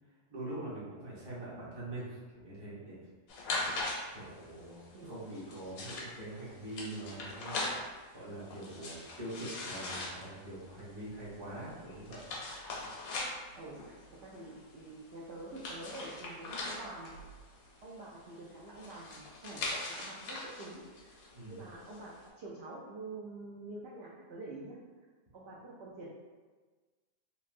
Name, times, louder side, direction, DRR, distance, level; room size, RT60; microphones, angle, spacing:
voice 1, 0.3-3.0 4.1-7.6 8.1-12.2 21.3-21.6, right 1 dB, 25° right, -8 dB, 0.7 m, -43 dB
sound 1, 3.3-22.2, left 2 dB, 85° left, 1.1 m, -42 dB
voice 2, 13.6-17.2 17.8-21.1 21.4-24.8 25.3-26.1, right 2 dB, 65° right, -6 dB, 0.7 m, -47 dB
3.2 x 2.5 x 2.5 m, 1.4 s
omnidirectional pair, 1.4 m